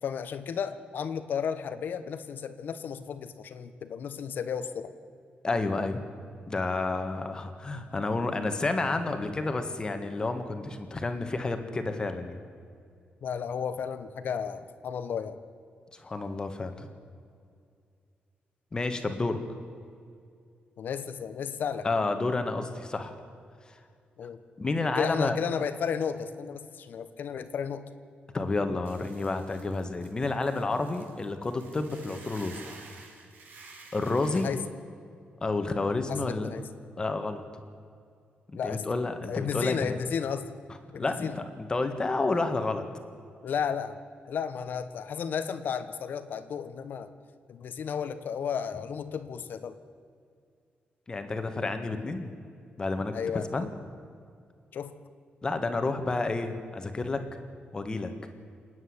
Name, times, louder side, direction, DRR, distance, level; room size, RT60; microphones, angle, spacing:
voice 1, 0.0-4.9 13.2-15.4 20.8-21.9 24.2-24.4 25.0-27.8 34.3-34.6 36.1-36.6 38.5-38.8 39.3-40.6 40.9-41.4 43.4-44.0 44.2-47.1 47.5-49.8 53.1-53.7 54.7-54.9, left 7 dB, 60° left, 11 dB, 1.3 m, -33 dB
voice 2, 5.4-6.0 6.5-12.4 15.9-16.9 18.7-19.4 21.8-23.1 23.7-23.8 24.6-25.4 28.3-32.7 33.9-34.5 35.4-36.5 37.0-37.4 38.5-40.0 40.9-42.9 51.1-52.3 52.8-53.7 55.4-57.2 57.7-58.1, left 3 dB, 20° left, 7 dB, 1.7 m, -30 dB
Hiss / Boiling, 28.8-34.5, right 3 dB, 55° right, 3.8 m, -51 dB
28.0 x 9.6 x 9.8 m, 2.3 s
wide cardioid pair, 160°, 4 cm